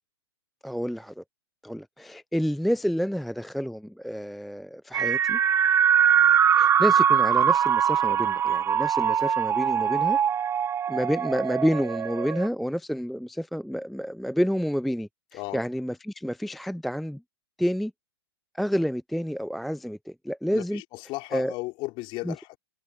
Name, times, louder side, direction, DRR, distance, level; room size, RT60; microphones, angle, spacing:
voice 1, 0.6-1.2 1.6-5.4 6.6-10.2 10.9-17.2 17.6-17.9 18.5-20.8 21.3-21.5 22.2-22.3, equal, ahead, 0.4 m, -29 dB
sound 1, 4.9-12.5, right 8 dB, 20° right, 1.2 m, -22 dB
voice 2, 20.5-22.6, left 22 dB, 35° left, 4.6 m, -35 dB
figure-of-eight pair, 110°, 14 cm